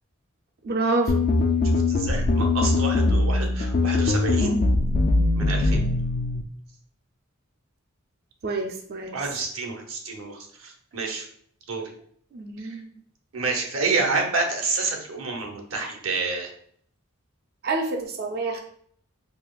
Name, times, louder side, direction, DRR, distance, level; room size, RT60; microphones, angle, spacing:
voice 1, 0.6-1.2 8.4-9.1 12.3-12.9 17.6-18.6, right 3 dB, 50° right, 3 dB, 0.5 m, -27 dB
sound 1, 1.1-6.4, left 2 dB, 45° left, 0.3 m, -22 dB
voice 2, 1.6-4.6 5.3-5.8 9.1-11.3 11.7-11.8 12.6-12.8 13.3-16.5, right 3 dB, 70° right, 2 dB, 0.8 m, -29 dB
4.1 x 2.8 x 2.3 m, 0.62 s
head